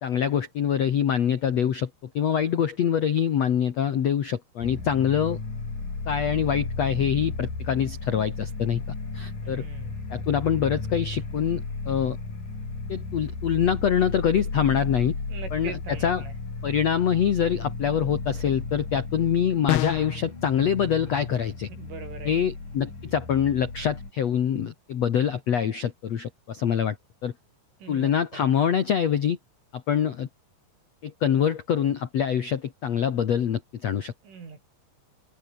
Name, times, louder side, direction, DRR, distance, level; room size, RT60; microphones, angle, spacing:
voice 1, 0.0-1.9 2.1-5.4 6.1-8.8 9.1-9.6 10.1-12.2 12.9-15.1 15.5-16.2 16.6-21.7 22.2-27.0 27.2-27.3 27.9-29.4 29.7-30.3 31.0-34.1, left 8 dB, 70° left, 1.6 m, -25 dB
sound 1, 4.6-24.1, left 3 dB, 40° left, 8.9 m, -34 dB
voice 2, 9.4-10.0 15.3-16.3 21.8-22.3 27.8-28.4 34.2-34.7, right 5 dB, 80° right, 9.5 m, -41 dB
sound 2, 19.7-20.2, left 20 dB, 85° left, 2.3 m, -25 dB
omnidirectional pair, 5.5 m